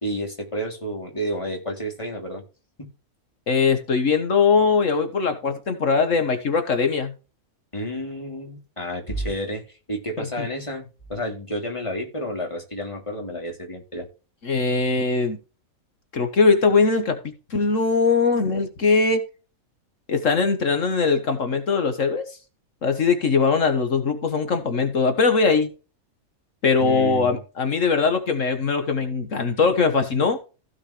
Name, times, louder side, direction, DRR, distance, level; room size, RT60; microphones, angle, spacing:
voice 1, 0.0-2.4 2.8-2.9 7.7-9.6 9.9-14.1 26.8-27.4, equal, 20° left, 3.2 m, -30 dB
voice 2, 3.5-7.1 10.2-10.3 14.4-15.4 16.1-19.2 20.1-22.3 22.8-25.7 26.6-30.4, left 4 dB, 60° left, 1.6 m, -21 dB
16.0 x 5.5 x 3.3 m
omnidirectional pair, 1.5 m